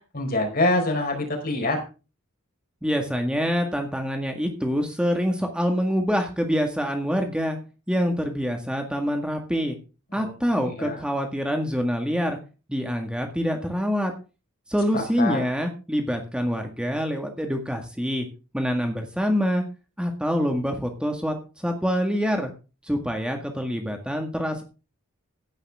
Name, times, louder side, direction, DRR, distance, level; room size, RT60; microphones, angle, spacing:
voice 1, 0.1-1.8 10.2-10.3 10.6-11.0 14.9-15.4, left 2 dB, 45° left, 3 dB, 4.8 m, -25 dB
voice 2, 2.8-7.6 7.9-9.8 10.1-12.4 12.7-14.1 14.7-18.3 18.5-19.6 20.0-22.5 22.8-24.6, equal, 5° right, 3 dB, 1.8 m, -25 dB
16.0 x 10.5 x 3.6 m, 0.32 s
head